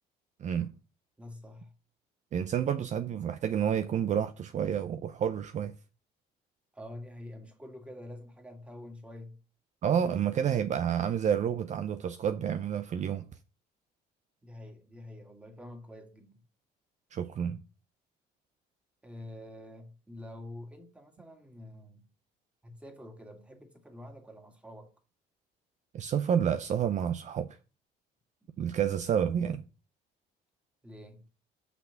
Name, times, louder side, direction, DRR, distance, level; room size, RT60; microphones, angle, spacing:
voice 1, 0.4-0.7 2.3-5.7 9.8-13.3 17.1-17.6 25.9-27.6 28.6-29.6, right 8 dB, 45° right, 0.6 m, -29 dB
voice 2, 1.2-1.7 6.7-9.4 14.4-16.4 19.0-22.1 22.6-24.9 30.8-31.3, left 1 dB, 5° right, 2.2 m, -47 dB
5.9 x 5.9 x 7.1 m
cardioid pair, 110°, 17 cm